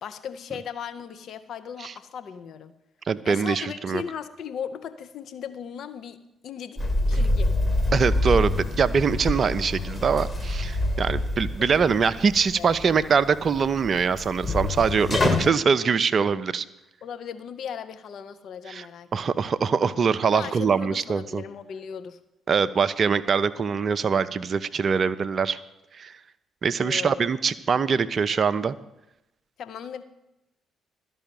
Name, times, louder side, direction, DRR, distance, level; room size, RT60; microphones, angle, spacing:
voice 1, 0.0-2.7 3.2-7.5 11.6-11.7 12.6-13.1 17.0-19.5 20.2-22.2 26.8-27.3 29.6-30.0, left 7 dB, 50° left, 10 dB, 0.6 m, -37 dB
voice 2, 3.1-4.0 7.2-7.3 7.9-16.7 18.7-18.9 19.1-21.4 22.5-25.6 26.0-26.1 26.6-28.8, right 6 dB, 40° right, 14 dB, 0.5 m, -23 dB
sound 1, 6.8-15.5, left 2 dB, 25° left, 1.4 m, -27 dB
12.5 x 5.5 x 9.1 m, 0.91 s
figure-of-eight pair, 45°, 0 cm